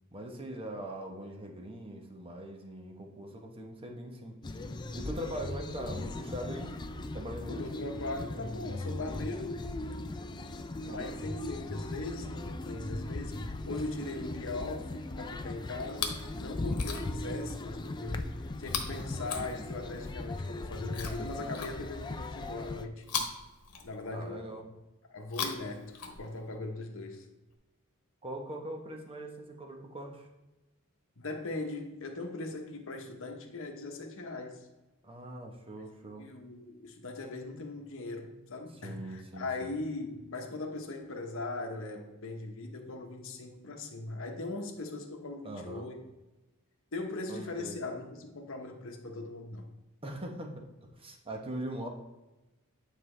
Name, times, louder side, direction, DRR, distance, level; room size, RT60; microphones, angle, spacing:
voice 1, 0.1-4.3 4.9-6.7 7.1-7.6 10.8-11.2 16.9-17.6 24.1-24.7 28.2-30.3 35.0-36.3 38.8-39.7 45.4-45.9 47.3-47.8 50.0-50.5 51.0-51.9, right 1 dB, 25° right, 2 dB, 1.0 m, -41 dB
sound 1, 4.4-22.9, left 2 dB, 20° left, 0.3 m, -38 dB
voice 2, 7.5-9.6 10.3-10.4 10.9-23.0 23.8-24.5 25.1-27.3 31.2-34.7 36.2-46.0 46.9-49.7, left 2 dB, 60° left, 3 dB, 1.1 m, -40 dB
Chewing mastication, 15.8-16.3 16.7-17.3 18.6-20.0 20.9-22.2 23.0-24.3 25.2-26.6 27.5-27.6, left 6 dB, 85° left, 1.1 m, -39 dB
9.3 x 4.7 x 3.3 m, 1.1 s
head